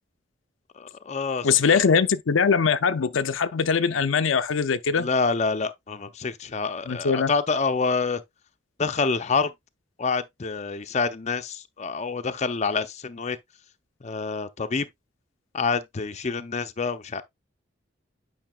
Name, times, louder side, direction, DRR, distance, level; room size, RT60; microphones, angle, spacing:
voice 1, 0.8-1.8 4.9-8.2 8.8-9.5 10.0-13.4 14.0-14.9 15.5-17.2, left 4 dB, 35° left, 0.6 m, -27 dB
voice 2, 1.4-5.1 6.9-7.3, left 5 dB, 85° left, 0.6 m, -22 dB
8.9 x 5.5 x 2.3 m
head